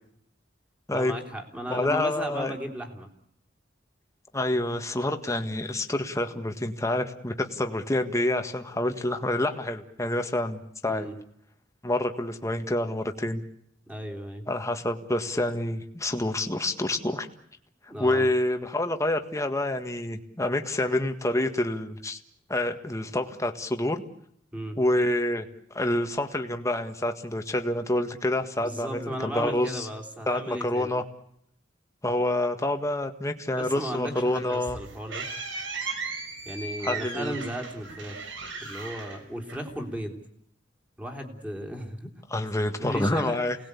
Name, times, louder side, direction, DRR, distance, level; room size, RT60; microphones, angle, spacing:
voice 1, 0.9-3.1 10.9-11.2 13.9-14.5 17.9-18.3 24.5-24.8 28.6-30.9 33.6-35.2 36.5-38.2 38.6-40.2 41.0-42.1 42.8-43.4, equal, 5° right, 2 dB, 3.7 m, -35 dB
voice 2, 1.7-2.5 4.3-11.1 11.8-13.4 14.5-17.3 18.0-22.2 22.5-24.0 24.8-25.5 25.7-29.9 30.3-31.0 32.0-34.8 36.8-37.3 42.3-43.6, left 1 dB, 15° left, 6 dB, 1.7 m, -27 dB
sound 1, 34.1-40.0, right 4 dB, 85° right, 4.5 m, -37 dB
29.0 x 19.5 x 8.4 m, 0.72 s
head